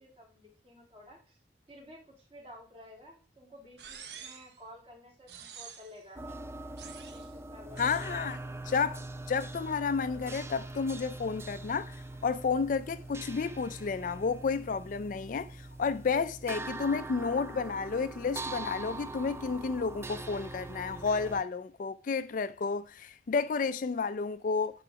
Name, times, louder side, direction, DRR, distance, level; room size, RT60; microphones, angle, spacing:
voice 1, 0.0-1.4 1.7-6.4 7.0-8.1, left 1 dB, 30° right, 3.2 m, -53 dB
sound 1, 3.8-4.6 5.3-6.0 6.8-7.3 7.8-8.1, right 7 dB, 65° right, 1.0 m, -48 dB
sound 2, 6.2-21.4, right 2 dB, 15° right, 0.4 m, -42 dB
voice 2, 7.8-8.4 8.7-24.8, left 5 dB, 50° left, 0.4 m, -31 dB
10.5 x 3.8 x 5.1 m
head